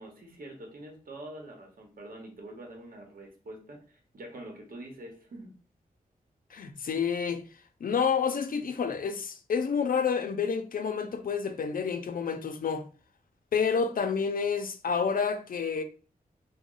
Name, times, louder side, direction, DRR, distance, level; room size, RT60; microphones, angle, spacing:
voice 1, 0.0-5.6, right 1 dB, 70° right, 0.9 m, -45 dB
voice 2, 6.5-7.4 7.8-12.8 13.5-15.8, left 6 dB, 70° left, 0.5 m, -29 dB
3.0 x 2.1 x 3.7 m
wide cardioid pair, 135°, 15 cm